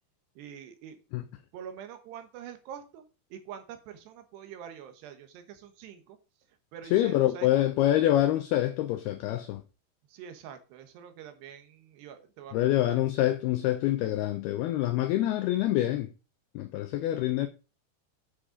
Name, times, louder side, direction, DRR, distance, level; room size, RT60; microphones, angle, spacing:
voice 1, 0.4-1.0 1.5-6.2 6.7-7.5 10.1-13.0, right 8 dB, 70° right, 3.0 m, -45 dB
voice 2, 6.9-9.6 12.5-16.1 16.6-17.5, left 13 dB, 85° left, 2.2 m, -26 dB
8.9 x 6.5 x 5.0 m
omnidirectional pair, 5.3 m